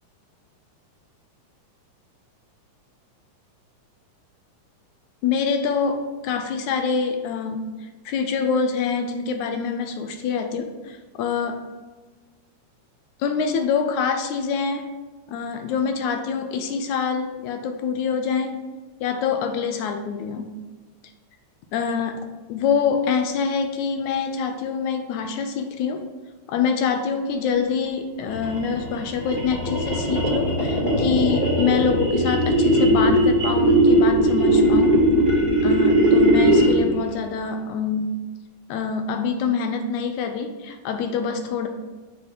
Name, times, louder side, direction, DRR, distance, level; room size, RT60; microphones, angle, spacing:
voice 1, 5.2-7.8 8.1-11.6 13.2-14.9 15.3-18.6 19.0-20.5 21.7-26.0 26.5-35.0 35.6-38.2 38.7-41.7, left 6 dB, 75° left, 6 dB, 1.9 m, -25 dB
sound 1, 28.2-36.9, right 1 dB, 10° left, 1.6 m, -19 dB
6.4 x 5.4 x 5.5 m, 1.2 s
omnidirectional pair, 3.7 m